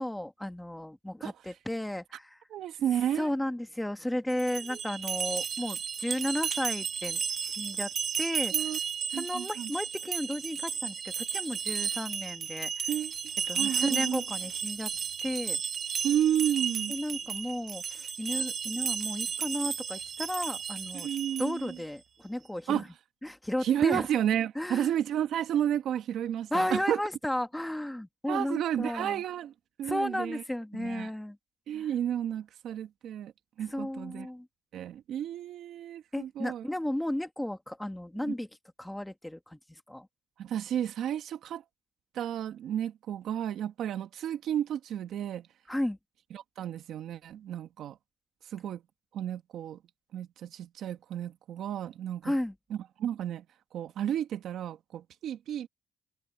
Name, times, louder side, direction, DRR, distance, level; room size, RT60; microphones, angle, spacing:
voice 1, 0.0-2.4 3.2-7.9 8.2-8.7 9.1-12.9 13.5-14.9 15.2-15.6 16.9-21.1 21.4-22.9 23.2-24.1 24.6-24.9 26.5-29.2 29.8-31.4 33.6-34.5 36.1-38.5 38.8-39.6 39.9-40.1 45.7-46.0 52.2-52.6, left 1 dB, 5° left, 1.8 m, -34 dB
voice 2, 2.5-3.3 4.7-4.8 8.5-8.8 9.1-9.7 12.9-13.1 13.5-14.2 16.0-16.9 20.9-21.8 22.7-22.8 23.6-27.0 28.3-29.5 29.8-30.4 30.7-31.1 31.7-33.3 33.6-34.3 34.7-36.6 38.2-38.3 40.4-41.6 42.1-45.5 46.3-48.0 48.5-48.8 49.1-49.8 50.1-52.3 52.7-53.4 53.7-55.7, right 10 dB, 75° right, 1.8 m, -32 dB
sound 1, 4.3-21.7, right 7 dB, 50° right, 0.5 m, -33 dB
cardioid pair, 90°, 0 cm